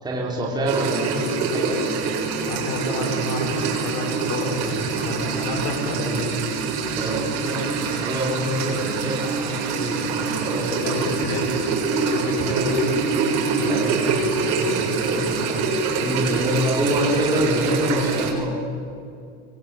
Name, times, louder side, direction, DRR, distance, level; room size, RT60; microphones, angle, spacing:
voice 1, 0.0-1.8 6.9-10.8 12.4-12.6 13.5-15.7 16.0-18.6, right 1 dB, 10° right, -3 dB, 4.2 m, -26 dB
sound 1, 0.7-18.3, right 4 dB, 50° right, 7.0 m, -25 dB
voice 2, 2.4-6.4 10.7-11.6 12.0-13.0 13.5-13.8, left 2 dB, 60° left, 4 dB, 7.2 m, -29 dB
24.5 x 23.5 x 9.1 m, 2.5 s
cardioid pair, 170°, 33 cm